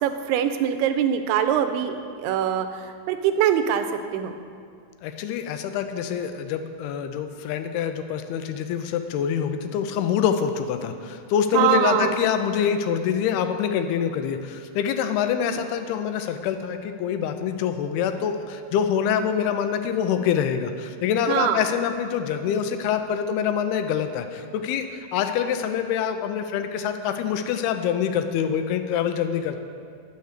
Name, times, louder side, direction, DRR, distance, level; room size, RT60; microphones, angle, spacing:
voice 1, 0.0-3.8 4.1-4.4 11.5-12.1 15.4-15.6 21.3-21.6, right 9 dB, 90° right, 8 dB, 2.6 m, -23 dB
voice 2, 5.0-29.6, left 8 dB, 85° left, 8 dB, 2.6 m, -25 dB
9.4 x 6.8 x 6.6 m, 2.3 s
omnidirectional pair, 4.6 m